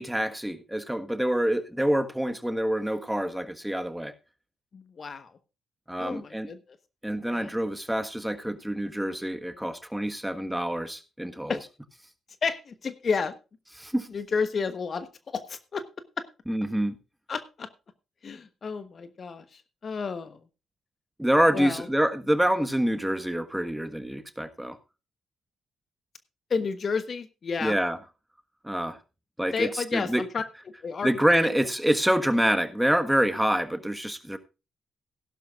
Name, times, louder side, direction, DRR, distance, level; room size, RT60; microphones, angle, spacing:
voice 1, 0.0-4.1 5.9-6.5 7.0-11.6 13.8-14.1 16.5-16.9 21.2-24.8 27.6-28.0 28.6-29.0 29.4-30.2 31.0-34.4, equal, 5° right, 1.4 m, -26 dB
voice 2, 4.7-5.3 6.0-6.6 7.2-7.5 11.5-11.6 12.4-13.3 14.1-15.8 16.2-16.3 17.3-17.7 18.2-20.4 21.5-21.9 26.5-27.7 29.5-30.4 30.8-31.1, left 5 dB, 50° left, 1.1 m, -31 dB
16.0 x 11.5 x 2.4 m
supercardioid pair, 50°, 0 cm